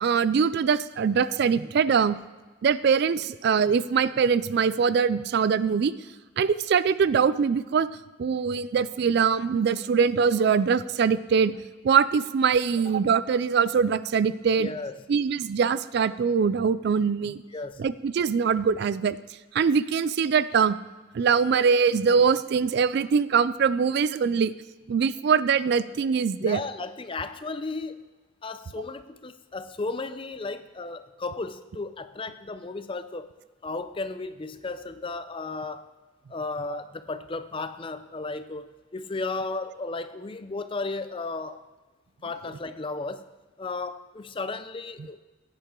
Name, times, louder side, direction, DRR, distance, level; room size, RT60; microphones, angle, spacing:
voice 1, 0.0-2.2 2.6-5.9 6.4-7.9 8.2-11.5 11.8-14.7 15.1-17.4 17.8-19.2 19.5-20.8 21.1-24.5 24.9-26.6 36.7-36.8, right 6 dB, 50° right, 16 dB, 0.3 m, -23 dB
voice 2, 14.6-14.9 17.5-17.8 26.4-28.1 28.4-33.3 33.6-35.9 36.3-41.7 42.2-43.3 43.6-45.2, left 3 dB, 25° left, 11 dB, 0.4 m, -34 dB
15.5 x 10.0 x 3.7 m, 1.2 s
head